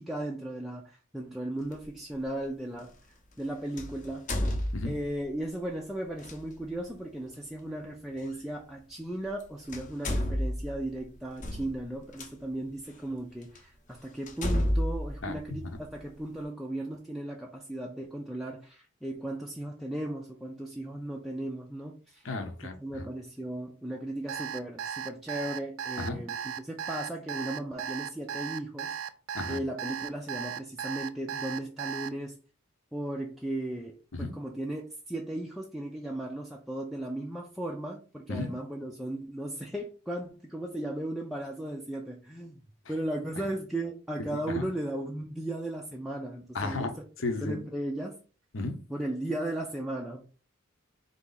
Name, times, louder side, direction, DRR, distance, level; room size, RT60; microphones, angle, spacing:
voice 1, 0.0-2.9 3.4-4.3 4.8-22.3 22.6-28.9 29.5-32.4 32.9-42.6 42.9-47.0 47.4-48.2 48.9-50.2, right 1 dB, ahead, -1 dB, 0.4 m, -36 dB
sound 1, 1.7-1.9 3.8-5.3 6.2-6.4 8.2-8.3 9.3-9.4 9.7-12.3 13.0-13.1 13.6-13.7 14.3-16.1, left 1 dB, 40° left, 0.7 m, -31 dB
voice 2, 22.2-23.1 26.0-26.2 29.3-29.6 34.1-34.3 38.3-38.5 44.3-44.7 46.5-46.9 47.2-47.5 48.5-48.8, left 2 dB, 75° left, 6 dB, 0.8 m, -33 dB
Alarm, 24.3-32.1, right 8 dB, 80° right, 0.4 m, -36 dB
4.0 x 2.7 x 3.9 m, 0.37 s
head